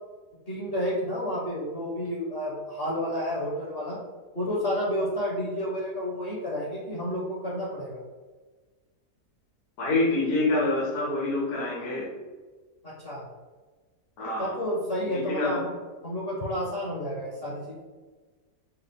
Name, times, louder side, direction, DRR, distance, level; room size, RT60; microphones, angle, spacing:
voice 1, 0.5-4.0 4.3-8.0 12.8-13.2 14.4-15.7 16.0-17.8, equal, 50° left, -4 dB, 0.8 m, -30 dB
voice 2, 9.8-12.0 14.2-14.5 15.1-15.6, left 2 dB, 70° left, -4 dB, 1.3 m, -26 dB
4.5 x 2.0 x 3.4 m, 1.3 s
omnidirectional pair, 1.7 m